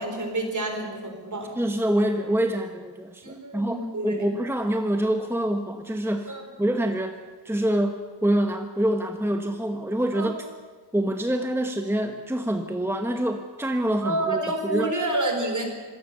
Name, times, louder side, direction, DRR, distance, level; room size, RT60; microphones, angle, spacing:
voice 1, 0.0-1.5 3.2-4.4 6.3-6.4 10.1-10.3 14.0-15.7, right 2 dB, 45° right, 4 dB, 4.5 m, -28 dB
voice 2, 1.6-6.3 6.6-7.2 7.4-10.4 10.9-14.9, right 1 dB, 5° right, 6 dB, 1.2 m, -26 dB
26.0 x 15.5 x 6.9 m, 1.4 s
wide cardioid pair, 95°, 41 cm